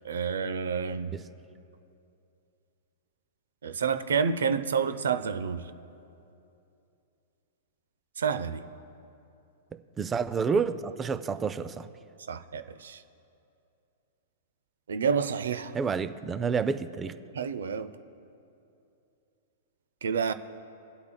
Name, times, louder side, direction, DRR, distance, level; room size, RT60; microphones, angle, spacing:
voice 1, 0.0-1.1 3.6-5.7 8.2-8.7 12.3-13.0 14.9-15.8 17.3-17.9 20.0-20.3, right 6 dB, 80° right, 12 dB, 0.5 m, -29 dB
voice 2, 10.0-11.9 15.7-17.1, right 5 dB, 20° right, 12 dB, 0.4 m, -29 dB
22.0 x 8.4 x 2.2 m, 2.7 s
hypercardioid pair, 115°, 0 cm